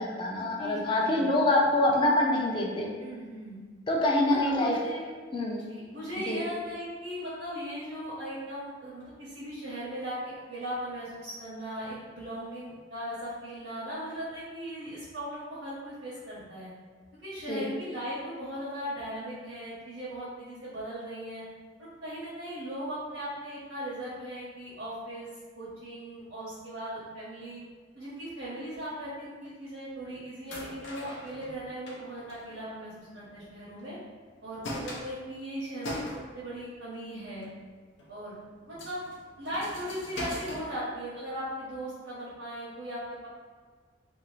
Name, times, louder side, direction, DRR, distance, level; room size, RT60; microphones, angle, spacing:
voice 1, 0.0-2.9 3.9-4.8 5.3-5.6 6.3-6.4 17.5-17.7, left 1 dB, 25° left, -2 dB, 0.4 m, -25 dB
voice 2, 0.6-1.3 3.0-3.6 4.3-5.1 5.5-16.7 17.2-21.4 22.0-25.3 25.5-27.6 27.9-34.0 34.4-36.0 36.3-37.5 38.1-38.4 38.7-39.0 39.4-43.3, equal, 85° right, -11 dB, 0.8 m, -38 dB
sound 1, 30.5-33.5 33.8-33.9 34.3-36.6 37.1-37.5 38.0-38.1 38.5-40.6, left 1 dB, 80° left, 0.5 m, -41 dB
2.6 x 2.4 x 3.0 m, 1.5 s
head